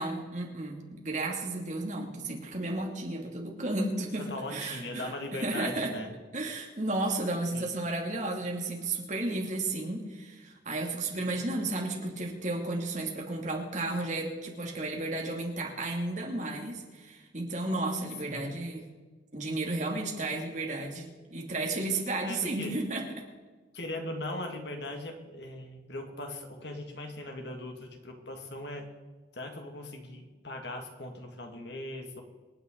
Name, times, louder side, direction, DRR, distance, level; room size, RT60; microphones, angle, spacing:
voice 1, 0.0-4.2 4.5-6.0 6.3-18.9 19.3-23.2, right 2 dB, 40° right, 0 dB, 2.6 m, -33 dB
voice 2, 4.2-6.1 7.5-7.7 18.3-18.5 22.2-22.8 23.7-28.9 29.3-32.2, left 1 dB, 65° left, 3 dB, 2.2 m, -39 dB
26.5 x 9.7 x 4.0 m, 1.3 s
head